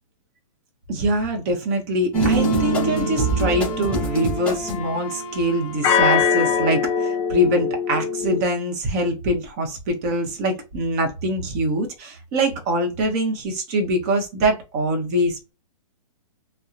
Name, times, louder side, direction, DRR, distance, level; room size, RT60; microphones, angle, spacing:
voice 1, 0.9-15.5, right 1 dB, 30° right, 0.8 m, -24 dB
sound 1, 2.1-4.9, right 2 dB, 5° left, 0.9 m, -23 dB
Wind instrument woodwind instrument, 2.4-6.5, left 2 dB, 25° left, 0.5 m, -35 dB
sound 2, 3.4-4.6 5.8-8.4, left 6 dB, 55° left, 0.8 m, -23 dB
2.8 x 2.0 x 2.4 m
hypercardioid pair, 160°, 18 cm